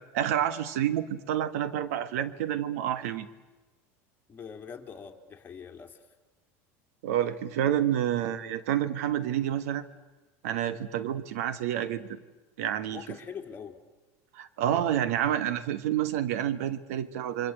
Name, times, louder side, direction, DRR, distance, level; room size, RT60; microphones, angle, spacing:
voice 1, 0.1-3.3 7.0-9.8 10.4-12.2 12.6-13.0 14.3-17.5, right 11 dB, 80° right, 13 dB, 1.5 m, -29 dB
voice 2, 4.3-6.0 12.9-13.8, left 7 dB, 25° left, 2 dB, 3.0 m, -43 dB
28.5 x 24.5 x 8.2 m, 1.2 s
supercardioid pair, 115°, 8 cm